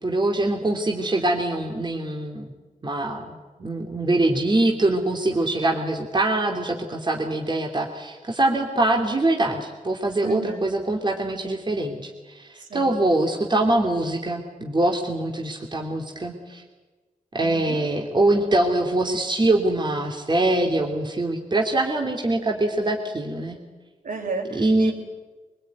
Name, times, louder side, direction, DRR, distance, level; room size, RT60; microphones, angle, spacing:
voice 1, 0.0-2.5 2.8-16.6 17.3-23.6 24.5-24.9, right 2 dB, 35° right, 1 dB, 2.9 m, -23 dB
voice 2, 10.2-10.6 12.6-13.0 17.4-17.8 24.0-24.9, right 4 dB, 70° right, 1 dB, 6.4 m, -33 dB
23.5 x 21.5 x 9.4 m, 1.3 s
cardioid pair, 80°, 14 cm